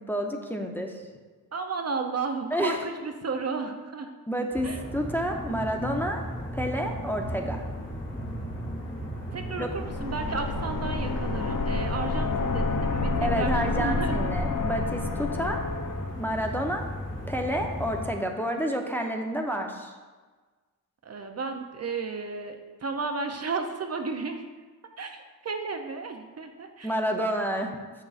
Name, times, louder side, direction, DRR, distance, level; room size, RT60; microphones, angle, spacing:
voice 1, 0.1-1.0 2.5-2.8 4.3-6.3 6.5-7.6 9.6-9.7 13.2-15.6 16.1-16.9 17.3-19.9 26.8-27.8, equal, 5° left, 2 dB, 0.6 m, -29 dB
voice 2, 1.5-4.1 4.6-4.8 9.3-14.3 21.0-24.4 25.0-25.1 25.4-26.9, right 4 dB, 45° right, 5 dB, 0.5 m, -33 dB
sound 1, 4.5-18.1, equal, 35° left, 1.7 m, -36 dB
sound 2, 9.7-16.2, left 3 dB, 65° left, 0.7 m, -29 dB
6.6 x 6.2 x 2.4 m, 1.4 s
cardioid pair, 65°, 36 cm